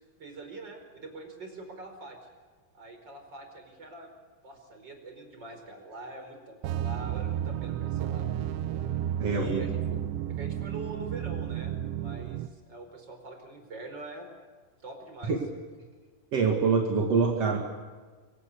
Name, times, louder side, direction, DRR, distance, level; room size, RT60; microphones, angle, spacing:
voice 1, 0.2-2.2 2.7-4.1 4.4-8.3 9.3-10.0 10.3-11.7 12.0-14.3 14.8-15.4, right 2 dB, 20° right, 5 dB, 4.8 m, -44 dB
sound 1, 6.6-12.5, right 11 dB, 75° right, 2.9 m, -32 dB
voice 2, 9.2-9.6 15.3-15.4 16.3-17.6, right 5 dB, 45° right, 1 dB, 2.2 m, -25 dB
25.5 x 25.5 x 7.0 m, 1.5 s
omnidirectional pair, 5.7 m